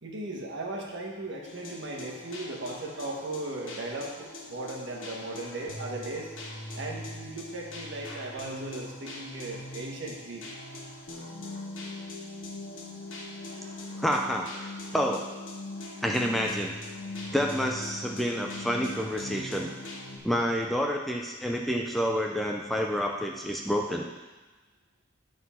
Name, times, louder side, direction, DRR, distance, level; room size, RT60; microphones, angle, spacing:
voice 1, 0.0-6.3 6.8-10.4, right 2 dB, 60° right, -1 dB, 1.4 m, -37 dB
sound 1, 1.4-20.2, left 2 dB, 70° left, 1.5 m, -41 dB
voice 2, 14.0-15.3 16.0-16.8 17.3-19.7 20.2-24.1, equal, ahead, 0 dB, 0.4 m, -29 dB
9.6 x 4.0 x 5.6 m, 1.2 s
head